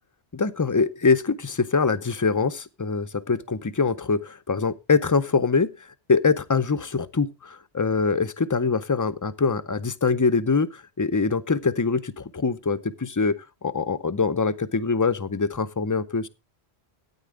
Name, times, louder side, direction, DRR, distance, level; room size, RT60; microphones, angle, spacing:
voice 1, 0.3-16.3, left 4 dB, 30° left, 0.4 m, -24 dB
13.5 x 9.3 x 3.6 m
omnidirectional pair, 1.1 m